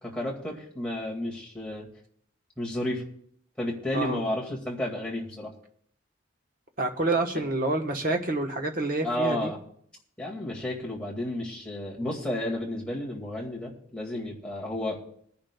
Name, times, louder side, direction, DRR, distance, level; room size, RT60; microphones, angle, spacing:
voice 1, 0.0-1.9 2.6-3.1 3.6-5.5 9.0-9.6 10.2-15.0, left 1 dB, 5° left, -4 dB, 2.0 m, -32 dB
voice 2, 6.8-9.5, right 2 dB, 45° right, 4 dB, 1.1 m, -28 dB
21.0 x 10.5 x 2.3 m, 0.67 s
head